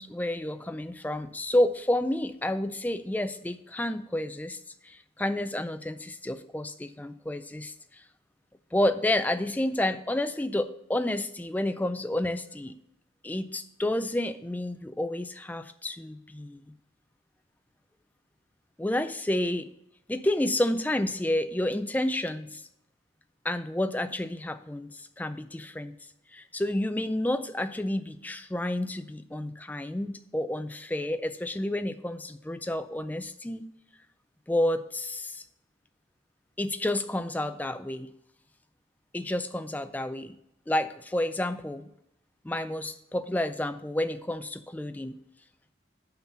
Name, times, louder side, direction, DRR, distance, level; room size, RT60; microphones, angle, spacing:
voice 1, 0.0-8.0 8.7-12.7 13.2-16.6 18.8-19.7 20.1-22.6 23.4-25.9 26.3-33.7 34.5-35.4 36.6-38.1 39.1-40.4 40.7-41.9 42.4-45.1, left 1 dB, 10° left, 10 dB, 0.3 m, -30 dB
5.7 x 5.7 x 6.6 m, 0.82 s
head